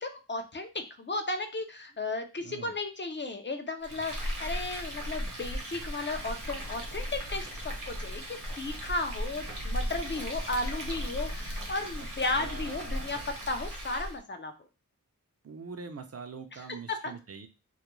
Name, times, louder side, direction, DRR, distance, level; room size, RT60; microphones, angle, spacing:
voice 1, 0.0-14.5 16.9-17.1, left 2 dB, 35° left, 7 dB, 0.4 m, -34 dB
voice 2, 2.4-2.7 12.0-13.2 15.4-17.5, right 5 dB, 45° right, 8 dB, 0.4 m, -44 dB
Frying (food), 3.8-14.2, equal, 65° right, 0.8 m, -37 dB
sound 1, 3.9-13.7, left 2 dB, 90° left, 0.7 m, -54 dB
2.3 x 2.1 x 3.0 m, 0.31 s
wide cardioid pair, 60°, 34 cm